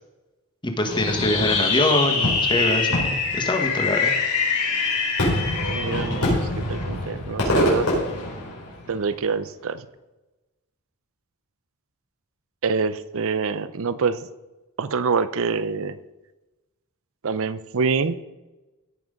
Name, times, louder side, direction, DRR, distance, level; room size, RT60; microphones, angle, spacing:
voice 1, 0.6-4.1, left 1 dB, 20° left, 4 dB, 1.4 m, -24 dB
Fireworks, 0.9-9.0, left 3 dB, 80° left, 4.9 m, -24 dB
voice 2, 5.7-7.9 8.9-9.9 12.6-14.2 14.8-16.0 17.2-18.2, right 5 dB, 65° right, 14 dB, 0.6 m, -25 dB
17.0 x 6.0 x 5.3 m, 1.1 s
head